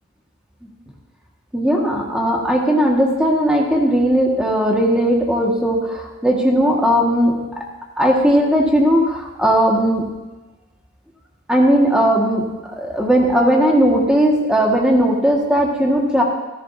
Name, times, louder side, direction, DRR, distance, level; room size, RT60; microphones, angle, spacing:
voice 1, 1.5-7.4 8.0-10.0 11.5-12.5 12.8-16.2, equal, 5° right, -1 dB, 1.7 m, -17 dB
14.5 x 14.0 x 2.7 m, 1.2 s
head